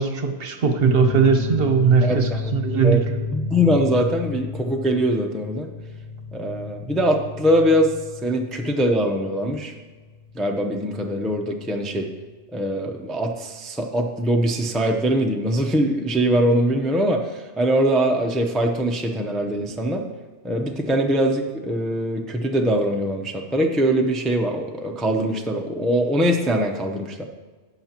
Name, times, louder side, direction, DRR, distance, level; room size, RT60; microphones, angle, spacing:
voice 1, 0.0-3.1, right 5 dB, 60° right, 6 dB, 1.0 m, -19 dB
sound 1, 0.8-12.0, left 4 dB, 25° left, 3.4 m, -32 dB
voice 2, 2.0-2.4 2.8-3.0 3.3-5.7 6.3-8.0 8.2-9.7 10.3-12.1 12.5-20.0 20.4-27.2, equal, ahead, 2 dB, 0.5 m, -22 dB
16.5 x 5.8 x 2.9 m, 1.3 s
omnidirectional pair, 1.2 m